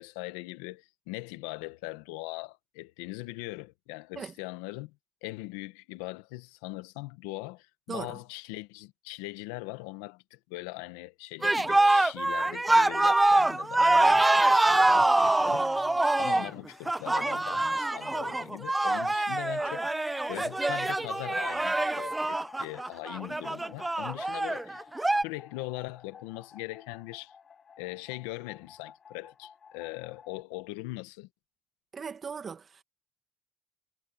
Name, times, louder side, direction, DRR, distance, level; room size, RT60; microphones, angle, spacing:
voice 1, 0.0-4.9 5.2-15.9 16.2-19.9 20.3-27.3 27.8-31.3, left 20 dB, 90° left, 1.3 m, -41 dB
voice 2, 7.9-8.2 31.9-32.8, right 6 dB, 45° right, 1.9 m, -38 dB
sound 1, 11.4-25.2, right 2 dB, 15° right, 0.3 m, -25 dB
sound 2, 15.9-30.4, left 6 dB, 45° left, 5.1 m, -55 dB
supercardioid pair, 70°, 0 cm